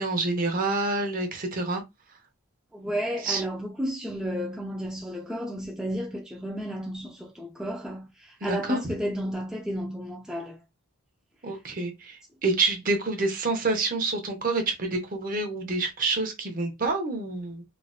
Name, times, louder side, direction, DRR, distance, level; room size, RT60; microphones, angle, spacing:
voice 1, 0.0-1.8 3.2-3.4 8.4-8.8 11.4-17.6, right 3 dB, 40° right, 0.8 m, -27 dB
voice 2, 2.7-10.6, equal, 5° right, 0.3 m, -32 dB
3.1 x 2.8 x 2.3 m
head